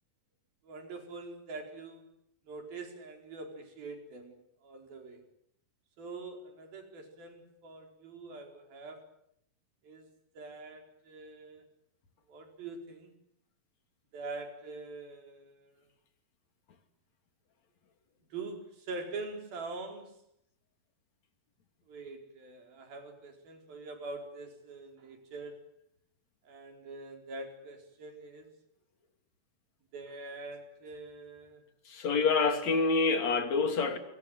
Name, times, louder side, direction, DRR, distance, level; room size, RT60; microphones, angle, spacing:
voice 1, 0.6-2.1 2.5-4.3 4.6-5.2 6.0-9.1 9.8-11.7 12.3-13.2 14.1-15.7 18.3-20.2 21.9-25.7 26.4-28.5 29.9-31.6, right 3 dB, 90° right, 6.3 m, -44 dB
voice 2, 31.9-34.0, left 4 dB, 50° left, 4.0 m, -27 dB
29.5 x 25.5 x 7.7 m
omnidirectional pair, 4.1 m